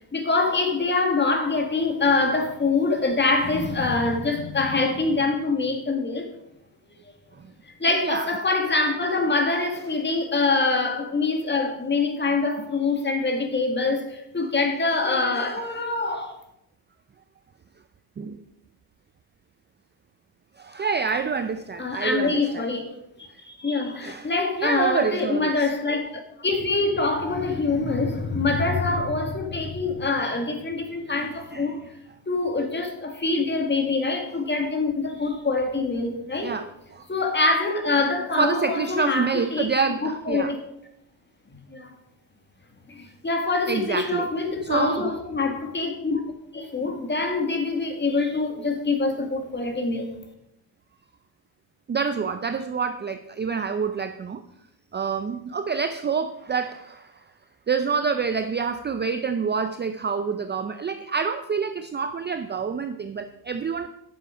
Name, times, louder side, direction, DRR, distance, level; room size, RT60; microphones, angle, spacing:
voice 1, 0.1-6.3 7.8-16.4 21.8-22.8 23.5-31.8 32.3-36.5 37.1-39.7 40.0-40.6 41.7-41.9 42.9-46.2 46.5-50.1, left 3 dB, 20° left, 1.9 m, -25 dB
voice 2, 7.9-8.3 15.5-15.6 18.2-18.4 20.6-22.7 24.0-24.3 24.6-25.7 31.2-31.7 36.4-37.0 38.4-40.5 43.7-44.3 44.6-45.1 51.9-54.4 54.9-57.2 57.7-63.9, right 5 dB, 20° right, 0.5 m, -27 dB
10.0 x 7.3 x 5.1 m
cardioid pair, 100°, 49 cm